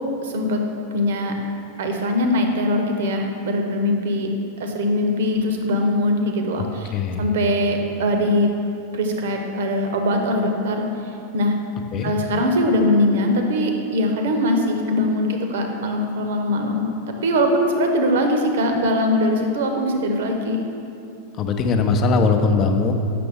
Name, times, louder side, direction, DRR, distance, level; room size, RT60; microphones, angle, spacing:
voice 1, 0.2-0.6 0.9-1.3 1.8-4.3 4.6-6.9 7.2-8.5 8.9-10.9 11.3-11.5 12.0-16.9 17.2-20.6, left 1 dB, 60° right, 4 dB, 0.8 m, -21 dB
voice 2, 6.9-7.2 11.9-12.1 21.4-22.9, left 4 dB, 30° left, 6 dB, 0.5 m, -20 dB
7.7 x 5.9 x 3.5 m, 2.7 s
figure-of-eight pair, 90°, 0 cm